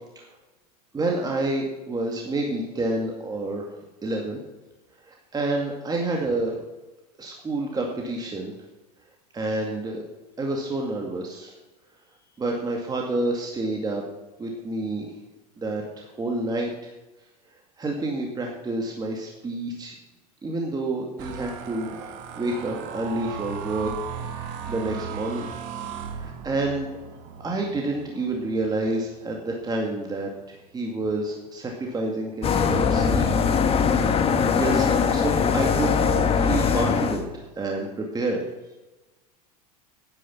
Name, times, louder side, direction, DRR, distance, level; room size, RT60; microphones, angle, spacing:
voice 1, 0.9-4.4 5.1-6.6 7.2-8.5 9.3-10.0 10.4-11.5 12.4-14.0 14.4-15.1 15.6-16.9 17.8-19.9 20.4-23.9 24.7-25.5 26.1-26.9 27.4-30.3 30.7-33.3 33.7-33.9 34.5-35.9 36.3-37.9 38.1-38.4, right 2 dB, 20° right, 0 dB, 2.2 m, -28 dB
sound 1, 21.2-30.6 31.1-31.4 31.7-32.1, right 7 dB, 60° right, 2.3 m, -37 dB
sound 2, 32.4-37.2, left 6 dB, 30° left, 1.6 m, -21 dB
9.9 x 9.5 x 7.1 m, 1.1 s
hypercardioid pair, 95°, 20 cm